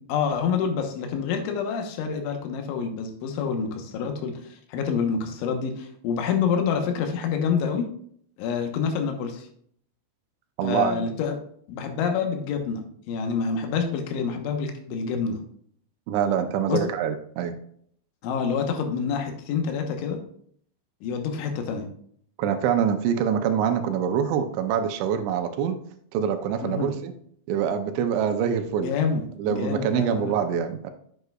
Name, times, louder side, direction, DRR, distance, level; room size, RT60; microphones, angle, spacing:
voice 1, 0.1-7.9 8.4-9.5 10.6-11.4 11.7-15.4 16.7-16.8 18.2-20.2 21.0-21.9 26.6-26.9 28.8-30.3, left 6 dB, 85° left, 4 dB, 3.5 m, -27 dB
voice 2, 10.6-11.1 16.1-17.6 22.4-25.8 26.1-27.1 27.5-28.9 29.4-30.9, right 8 dB, 80° right, 7 dB, 2.9 m, -25 dB
8.1 x 7.8 x 2.3 m, 0.62 s
omnidirectional pair, 5.3 m